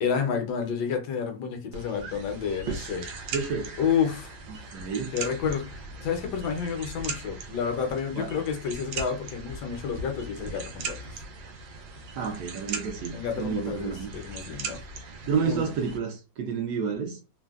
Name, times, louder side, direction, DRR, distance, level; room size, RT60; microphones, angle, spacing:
voice 1, 0.0-3.1 3.8-4.3 5.1-11.2 13.1-14.8 15.3-15.7, left 7 dB, 70° left, 1.1 m, -30 dB
sound 1, 1.7-16.0, right 4 dB, 90° right, 1.3 m, -39 dB
voice 2, 3.3-3.7 4.7-5.1 8.1-8.3 12.2-14.1 15.3-17.2, right 6 dB, 70° right, 1.1 m, -30 dB
3.2 x 2.1 x 2.3 m
omnidirectional pair, 2.0 m